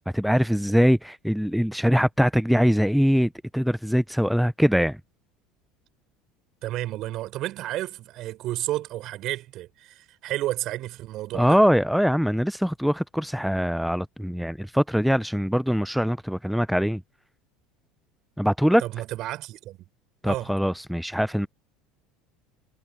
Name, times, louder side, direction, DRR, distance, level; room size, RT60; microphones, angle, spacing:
voice 1, 0.1-5.0 11.3-17.0 18.4-18.8 20.2-21.5, equal, ahead, 0.5 m, -22 dB
voice 2, 6.6-11.6 18.8-19.8 20.2-20.5, right 15 dB, 55° right, 6.2 m, -31 dB
hypercardioid pair, 80°, 0 cm